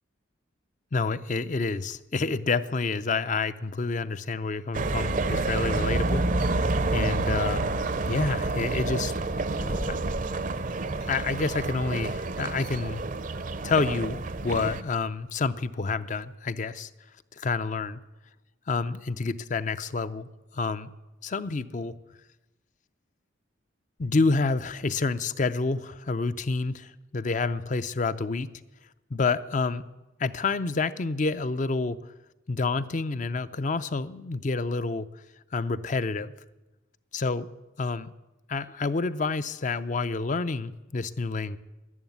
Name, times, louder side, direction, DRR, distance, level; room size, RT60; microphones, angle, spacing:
voice 1, 0.9-6.6 6.9-7.8 8.1-9.1 9.9-10.0 11.1-13.0 13.6-16.9 17.4-18.0 18.7-20.3 20.5-20.9 21.2-21.9 24.0-28.5 29.1-29.8 30.2-32.0 32.5-35.1 35.5-36.3 37.1-37.5 37.8-38.1 38.5-41.6, left 4 dB, 40° left, 14 dB, 0.5 m, -28 dB
sound 1, 4.7-14.8, right 3 dB, 40° right, 0.6 m, -28 dB
sound 2, 5.2-5.9 6.3-8.9 9.1-10.6 11.0-12.2 12.6-12.8 14.5-15.8 16.2-16.3, left 1 dB, 75° left, 1.1 m, -41 dB
11.5 x 11.0 x 9.4 m, 1.1 s
head